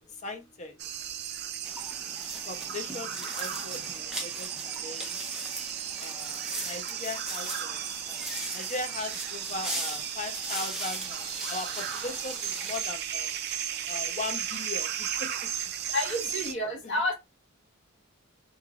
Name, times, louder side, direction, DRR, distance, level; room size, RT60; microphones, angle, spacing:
voice 1, 0.1-0.8 2.4-5.2 6.0-13.4 13.9-15.5 16.8-17.0, left 3 dB, 35° left, 0.7 m, -39 dB
sound 1, 0.8-16.5, right 10 dB, 50° right, 0.4 m, -35 dB
sound 2, 1.6-12.9, right 1 dB, 5° right, 0.8 m, -39 dB
voice 2, 15.9-17.1, left 1 dB, 55° left, 1.6 m, -29 dB
3.2 x 2.6 x 3.7 m
head